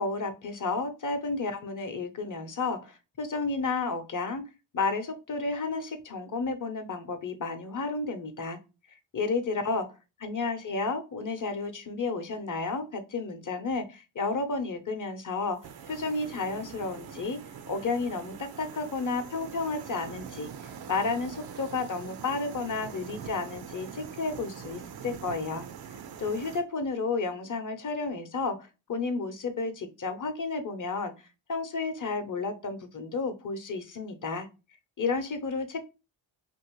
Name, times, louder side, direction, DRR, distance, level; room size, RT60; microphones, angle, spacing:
voice 1, 0.0-4.4 4.7-8.6 9.1-9.9 10.2-15.6 15.9-17.4 17.7-25.6 25.9-31.1 31.5-34.5 35.0-35.8, left 3 dB, 40° left, 8 dB, 0.8 m, -32 dB
sound 1, 15.6-26.6, right 7 dB, 55° right, 0.5 m, -43 dB
2.9 x 2.6 x 3.0 m, 0.29 s
cardioid pair, 55°, 47 cm